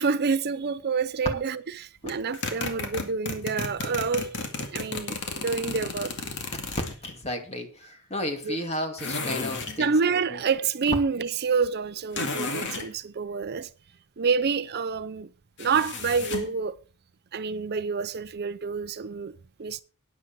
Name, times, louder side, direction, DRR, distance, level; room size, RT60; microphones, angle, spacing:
voice 1, 0.0-6.2 8.4-8.6 9.8-13.7 14.2-15.3 15.6-16.8 17.3-19.8, right 5 dB, 45° right, 0.5 m, -28 dB
sound 1, 2.1-7.1 9.0-9.8 12.1-12.9 15.6-16.6, left 3 dB, 55° left, 2.3 m, -33 dB
voice 2, 7.0-9.9 10.3-10.4, left 1 dB, 30° left, 2.4 m, -33 dB
12.5 x 9.7 x 4.6 m
head